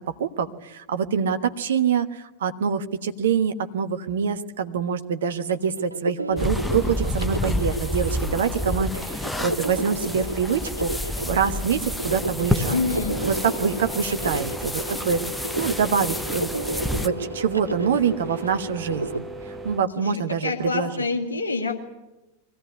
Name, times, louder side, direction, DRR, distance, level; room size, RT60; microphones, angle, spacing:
voice 1, 0.2-12.8 13.2-19.3 19.6-20.9, right 7 dB, 60° right, 8 dB, 1.3 m, -25 dB
sound 1, 5.5-19.2, right 1 dB, 85° right, 0.8 m, -32 dB
sound 2, 6.4-17.1, left 1 dB, 5° left, 1.1 m, -29 dB
sound 3, 12.1-19.8, right 2 dB, 15° right, 1.2 m, -38 dB
voice 2, 12.7-13.2 20.0-20.1 20.4-21.8, left 3 dB, 75° left, 3 dB, 1.9 m, -26 dB
23.0 x 16.5 x 9.7 m, 1.0 s
figure-of-eight pair, 90°, 0 cm